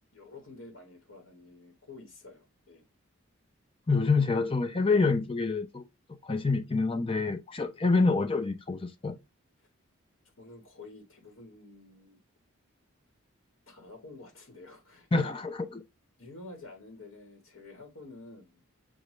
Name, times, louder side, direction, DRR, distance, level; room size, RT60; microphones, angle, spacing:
voice 1, 0.1-2.8 10.4-12.2 13.7-15.3 16.2-18.6, left 2 dB, 75° left, 1.3 m, -49 dB
voice 2, 3.9-9.2 15.1-15.8, left 3 dB, 25° left, 0.4 m, -27 dB
6.5 x 2.4 x 3.0 m
head